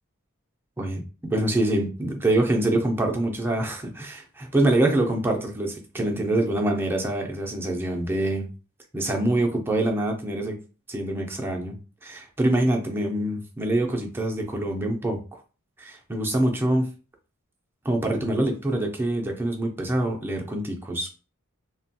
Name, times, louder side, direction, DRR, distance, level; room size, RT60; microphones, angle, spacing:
voice 1, 0.8-8.5 8.9-10.6 10.9-11.8 12.0-15.2 15.8-16.9 17.8-21.1, right 1 dB, 10° right, 1 dB, 0.5 m, -25 dB
2.9 x 2.2 x 2.8 m, 0.34 s
head